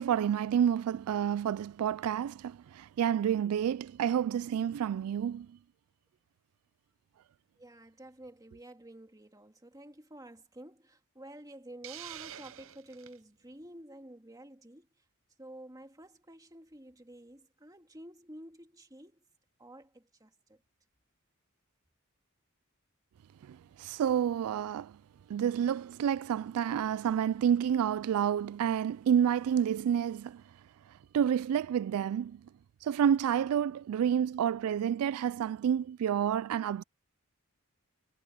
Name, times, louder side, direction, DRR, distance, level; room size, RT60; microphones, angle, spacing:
voice 1, 0.0-5.5 23.8-24.9 25.3-30.4 31.1-32.4 32.8-36.8, right 9 dB, 80° right, 0.3 m, -29 dB
voice 2, 7.6-14.9 15.4-19.2 19.6-20.6, right 1 dB, 15° right, 2.0 m, -50 dB
Hiss, 11.8-13.2, right 11 dB, 60° right, 0.7 m, -46 dB
head